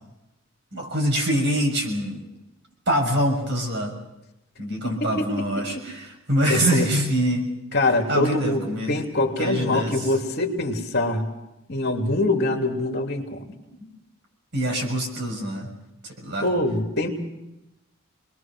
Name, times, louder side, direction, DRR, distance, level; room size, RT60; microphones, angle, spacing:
voice 1, 0.7-2.3 2.9-3.9 4.6-7.4 8.1-9.0 9.4-10.1 13.8-13.9 14.5-15.7 16.0-16.5, right 1 dB, 50° right, 2 dB, 6.4 m, -24 dB
voice 2, 6.4-6.9 7.7-8.6 8.9-11.2 11.7-13.5 16.4-17.1, left 2 dB, 45° left, 3 dB, 3.0 m, -24 dB
28.0 x 21.5 x 6.2 m, 0.92 s
head